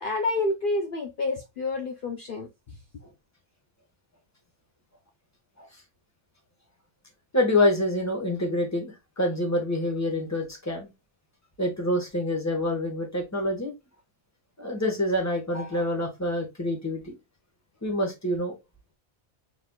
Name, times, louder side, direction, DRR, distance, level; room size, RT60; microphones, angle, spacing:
voice 1, 0.0-2.5, left 2 dB, 55° left, 0.8 m, -28 dB
voice 2, 7.3-10.9 11.6-13.7 14.6-17.1 17.8-18.5, left 1 dB, 15° left, 1.3 m, -26 dB
6.2 x 3.3 x 2.3 m
omnidirectional pair, 1.1 m